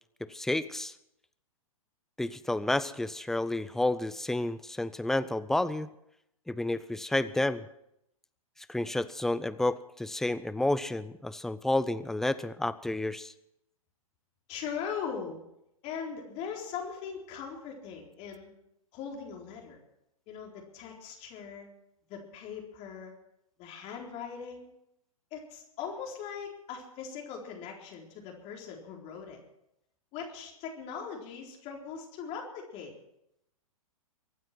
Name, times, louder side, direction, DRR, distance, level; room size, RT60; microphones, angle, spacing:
voice 1, 0.3-0.9 2.2-5.9 6.5-7.7 8.7-13.3, left 2 dB, ahead, 15 dB, 0.6 m, -30 dB
voice 2, 14.5-15.4 15.8-18.5 18.9-19.8 20.3-21.7 22.1-23.1 23.6-24.7 25.3-29.4 30.1-32.9, left 6 dB, 35° left, 0 dB, 4.1 m, -40 dB
23.5 x 9.4 x 6.0 m, 0.81 s
hypercardioid pair, 115°, 19 cm